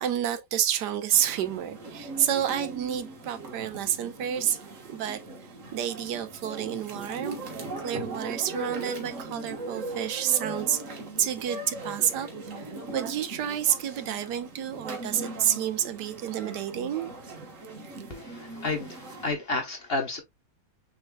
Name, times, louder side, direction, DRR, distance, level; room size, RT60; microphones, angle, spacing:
voice 1, 0.0-5.2 5.7-7.4 7.8-12.3 12.6-17.1, right 10 dB, 80° right, 1.3 m, -29 dB
sound 1, 1.1-19.3, right 2 dB, 50° right, 1.5 m, -39 dB
voice 2, 18.1-20.2, left 3 dB, 40° left, 1.1 m, -31 dB
6.4 x 3.7 x 2.2 m
omnidirectional pair, 1.8 m